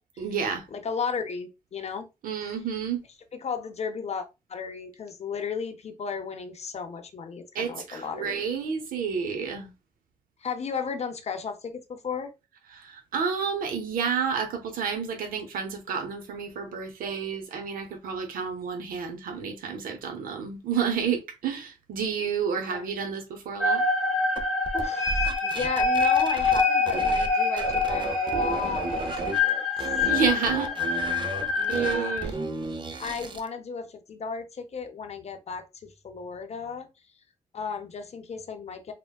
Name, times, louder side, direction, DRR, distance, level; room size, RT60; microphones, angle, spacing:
voice 1, 0.2-0.6 2.2-3.0 7.5-9.7 12.7-23.8 30.0-30.7 31.7-32.3, right 6 dB, 85° right, 0.7 m, -30 dB
voice 2, 0.7-2.1 3.4-8.4 10.4-12.3 22.6-22.9 24.7-29.6 30.2-30.7 31.6-32.4 33.0-36.9 37.5-38.9, left 6 dB, 50° left, 0.6 m, -34 dB
sound 1, 23.6-32.2, left 3 dB, 5° right, 1.1 m, -26 dB
sound 2, 24.4-27.3 27.6-29.4 29.8-33.5, right 3 dB, 35° right, 0.5 m, -34 dB
3.4 x 2.1 x 2.2 m
cardioid pair, 65°, 14 cm